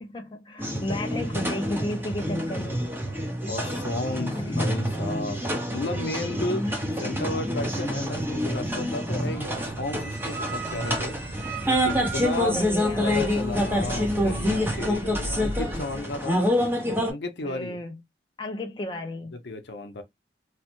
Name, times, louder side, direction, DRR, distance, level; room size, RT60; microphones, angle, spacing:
voice 1, 0.0-2.9 4.3-4.7 12.4-13.3 13.8-13.9 17.4-18.0 18.4-19.4, left 1 dB, 25° left, 0.4 m, -33 dB
sound 1, 0.6-17.1, equal, 10° right, 0.7 m, -27 dB
sound 2, 1.3-16.4, right 1 dB, 70° right, 0.6 m, -39 dB
voice 2, 3.5-5.4 5.7-6.6 7.0-11.2 11.7-12.6 12.9-16.4 17.1-17.8 19.4-20.0, left 2 dB, 70° left, 0.7 m, -33 dB
sound 3, 10.0-16.1, right 6 dB, 45° right, 1.0 m, -41 dB
3.1 x 2.0 x 2.9 m
head